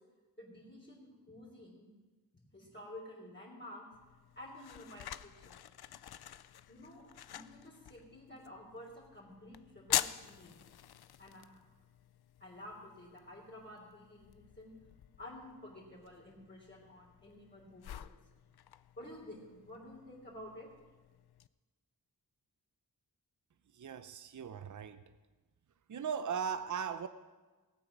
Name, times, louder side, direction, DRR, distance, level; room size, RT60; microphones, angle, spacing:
voice 1, 0.4-1.9 2.5-3.9 4.3-5.6 6.7-10.6 11.2-11.7 12.4-14.7 15.2-18.1 19.0-20.7, left 1 dB, 30° left, 3.4 m, -51 dB
sound 1, 3.9-21.5, left 10 dB, 80° left, 0.5 m, -45 dB
voice 2, 23.7-25.0 25.9-27.1, right 7 dB, 50° right, 0.6 m, -38 dB
18.5 x 8.0 x 6.0 m
wide cardioid pair, 80°, 37 cm